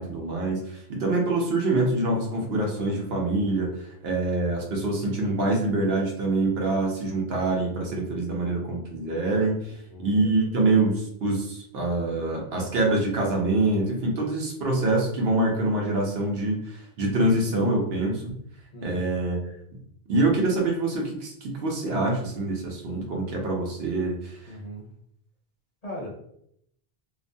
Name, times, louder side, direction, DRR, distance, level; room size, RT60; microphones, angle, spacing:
voice 1, 0.0-9.6 10.0-18.3 18.8-19.5 20.1-24.5, right 2 dB, 75° right, 0 dB, 0.9 m, -25 dB
voice 2, 18.7-19.1 24.5-24.9 25.8-26.1, equal, 45° left, -4 dB, 0.7 m, -38 dB
2.5 x 2.1 x 2.6 m, 0.71 s
omnidirectional pair, 1.1 m